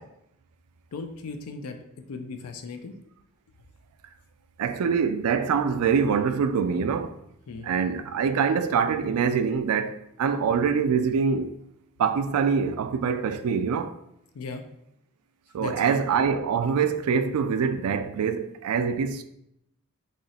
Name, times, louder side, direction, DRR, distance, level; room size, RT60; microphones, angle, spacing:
voice 1, 0.9-1.8 2.1-3.0 7.5-7.7 14.3-14.6 15.6-16.0, left 4 dB, 80° left, 0.4 m, -37 dB
voice 2, 4.6-7.2 7.6-11.6 12.0-13.9 15.5-19.2, right 6 dB, 80° right, 0.3 m, -24 dB
3.0 x 2.8 x 4.1 m
head